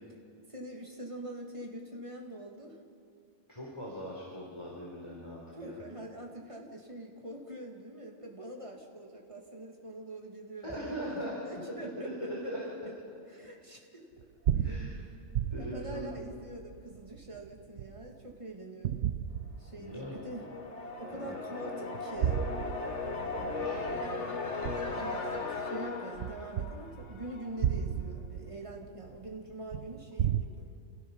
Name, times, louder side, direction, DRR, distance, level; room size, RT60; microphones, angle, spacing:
voice 1, 0.5-2.8 5.6-11.2 11.4-12.1 13.3-14.1 14.6-14.7 15.6-19.1 19.6-20.5 21.0-22.4 24.9-30.7, right 1 dB, 25° right, 0 dB, 2.5 m, -44 dB
voice 2, 3.5-5.8 10.6-11.4 12.0-12.6 14.6-15.1 15.5-16.1 19.8-20.2 21.1-21.3 23.3-24.1, equal, 25° left, -5 dB, 4.0 m, -40 dB
sound 1, 14.2-18.3 18.9-20.2 20.7-20.8 21.9-25.6 26.2-30.4, right 9 dB, 70° right, 1.0 m, -35 dB
sound 2, 19.9-27.6, left 3 dB, 75° left, 1.9 m, -37 dB
28.5 x 17.0 x 5.6 m, 2.3 s
omnidirectional pair, 1.2 m